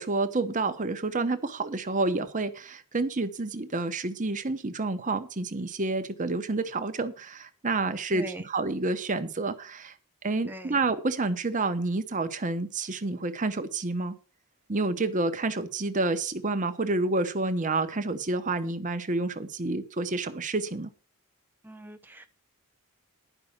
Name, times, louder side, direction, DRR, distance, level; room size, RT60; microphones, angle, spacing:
voice 1, 0.0-9.9 10.2-14.2 14.7-20.9, right 3 dB, 35° right, 9 dB, 0.9 m, -29 dB
voice 2, 8.1-8.5 10.5-10.8 21.6-22.3, equal, 10° right, 7 dB, 0.8 m, -41 dB
11.0 x 5.5 x 7.2 m, 0.38 s
head